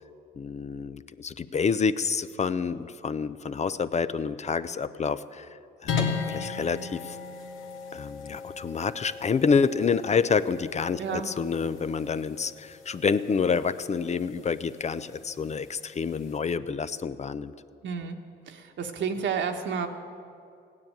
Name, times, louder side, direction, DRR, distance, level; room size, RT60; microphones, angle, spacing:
voice 1, 0.4-5.5 5.8-7.2 7.9-17.5, left 5 dB, 35° left, 13 dB, 0.5 m, -28 dB
sound 1, 5.9-16.4, left 5 dB, 85° left, 1.8 m, -37 dB
voice 2, 17.8-18.2 18.5-19.9, right 6 dB, 70° right, 5 dB, 1.5 m, -30 dB
15.5 x 9.7 x 8.9 m, 2.5 s
cardioid pair, 90°, 20 cm